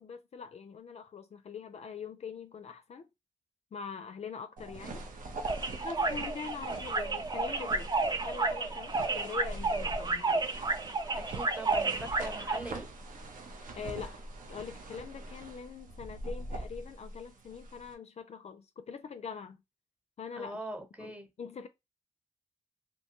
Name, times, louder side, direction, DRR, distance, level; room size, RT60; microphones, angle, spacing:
voice 1, 0.0-3.1 3.7-5.0 5.8-7.9 8.3-10.5 13.7-14.2 14.5-19.6 20.2-20.6 21.0-21.7, left 6 dB, 50° left, 0.4 m, -43 dB
sound 1, 4.6-17.9, right 2 dB, 75° right, 0.6 m, -43 dB
sound 2, 5.4-12.6, right 3 dB, 30° right, 0.5 m, -31 dB
voice 2, 11.2-12.9 20.4-21.3, right 1 dB, 10° right, 0.9 m, -42 dB
2.6 x 2.2 x 2.9 m
cardioid pair, 55°, 14 cm